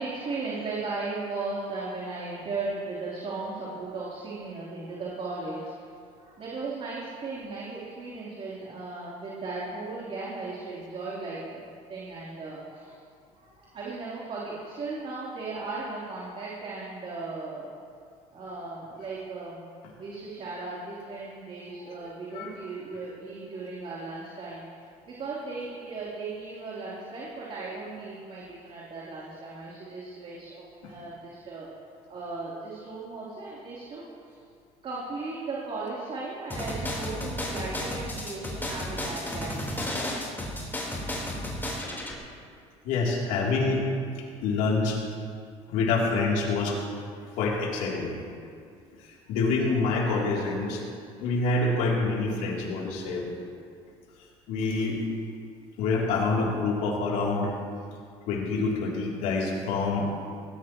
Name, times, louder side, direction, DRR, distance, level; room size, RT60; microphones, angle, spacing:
voice 1, 0.0-5.8 6.2-13.0 13.4-17.7 18.3-19.6 20.0-24.6 25.1-31.7 32.1-34.0 34.8-39.6, right 3 dB, 50° right, -7 dB, 3.8 m, -36 dB
sound 1, 36.5-42.1, left 1 dB, 15° left, 4.3 m, -33 dB
voice 2, 42.8-43.9 44.4-45.0 45.7-46.8 47.3-48.1 49.0-50.8 51.2-53.3 54.5-55.0 55.8-57.5 58.3-60.1, left 3 dB, 80° left, -3 dB, 3.4 m, -26 dB
19.5 x 17.5 x 3.2 m, 2.2 s
supercardioid pair, 90°, 13 cm